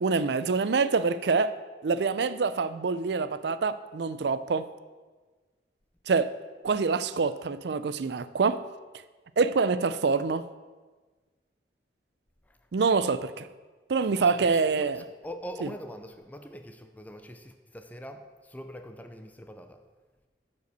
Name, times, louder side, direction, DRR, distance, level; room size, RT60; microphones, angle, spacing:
voice 1, 0.0-1.5 1.8-4.7 6.1-6.3 6.6-8.6 9.4-10.5 12.7-13.5 13.9-15.0 15.6-15.7, right 4 dB, 70° right, 0.4 m, -26 dB
voice 2, 14.1-19.8, equal, 10° left, 0.5 m, -43 dB
9.0 x 5.5 x 6.7 m
head